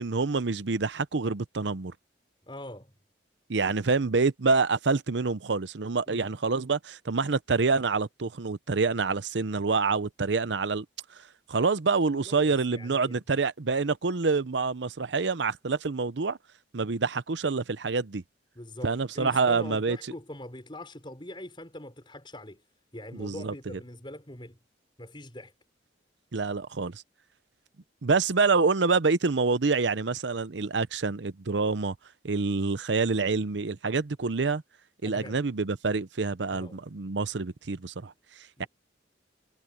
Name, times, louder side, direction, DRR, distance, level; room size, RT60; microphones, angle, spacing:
voice 1, 0.0-1.9 3.5-10.8 11.5-16.4 16.7-18.2 18.8-20.0 23.1-23.5 26.3-27.0 28.0-31.9 32.2-34.6 35.0-38.1 38.6-38.7, right 4 dB, 75° right, 0.7 m, -27 dB
voice 2, 2.4-2.9 6.1-6.3 12.1-13.2 18.6-22.6 22.9-24.6 25.0-25.5 35.0-35.4 36.5-36.8 38.6-38.7, left 1 dB, 25° left, 5.6 m, -43 dB
head